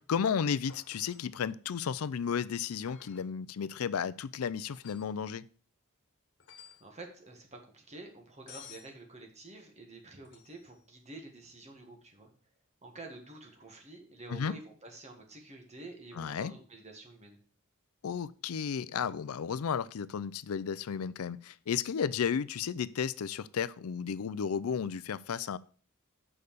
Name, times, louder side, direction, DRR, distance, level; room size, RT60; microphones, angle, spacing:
voice 1, 0.0-5.5 14.3-14.5 16.2-16.5 18.0-25.6, left 7 dB, 80° left, 0.4 m, -33 dB
sound 1, 0.7-1.3 2.8-3.3 4.7-5.2 6.4-6.9 8.5-8.9 10.2-10.7 13.5-13.6, left 8 dB, 60° left, 1.4 m, -53 dB
voice 2, 6.8-12.3 12.8-17.4, right 2 dB, 30° right, 1.8 m, -49 dB
6.6 x 5.5 x 6.6 m
head